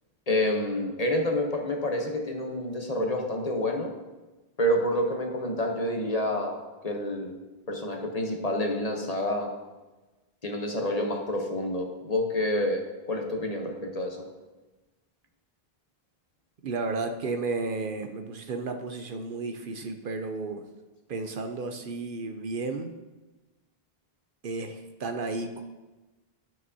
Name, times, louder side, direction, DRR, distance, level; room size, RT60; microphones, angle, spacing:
voice 1, 0.3-3.9 4.6-6.6 6.8-7.4 7.7-9.5 10.4-14.2, left 1 dB, 40° left, 2 dB, 1.0 m, -28 dB
voice 2, 16.6-20.6 21.1-22.9 24.4-25.6, right 3 dB, 60° right, 6 dB, 0.8 m, -33 dB
12.0 x 6.0 x 2.7 m, 1.2 s
omnidirectional pair, 1.0 m